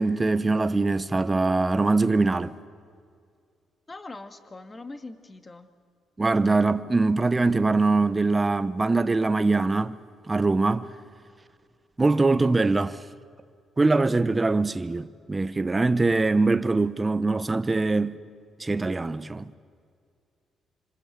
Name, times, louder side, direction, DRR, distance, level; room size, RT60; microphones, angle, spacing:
voice 1, 0.0-2.5 6.2-10.0 10.3-10.9 12.0-13.0 13.8-18.2 18.6-19.5, right 3 dB, 20° right, 1.0 m, -23 dB
voice 2, 3.9-5.7, left 2 dB, 25° left, 2.0 m, -42 dB
26.0 x 26.0 x 8.2 m
cardioid pair, 90°, 0 cm